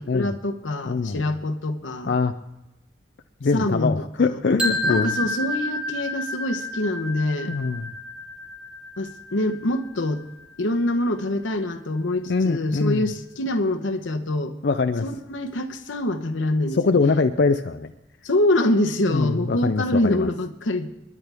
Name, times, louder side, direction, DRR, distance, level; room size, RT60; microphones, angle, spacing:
voice 1, 0.0-2.2 3.5-4.4 4.9-7.5 9.0-10.2 10.6-14.5 15.0-17.3 18.2-20.9, left 1 dB, 90° left, 7 dB, 1.0 m, -25 dB
voice 2, 0.9-1.3 2.1-2.3 3.4-5.2 7.5-7.9 12.3-13.0 14.6-15.1 16.7-17.9 19.1-20.3, left 4 dB, 60° left, 8 dB, 0.4 m, -23 dB
sound 1, 4.6-10.5, left 1 dB, 5° right, 1.5 m, -30 dB
29.0 x 10.5 x 3.5 m, 0.97 s
head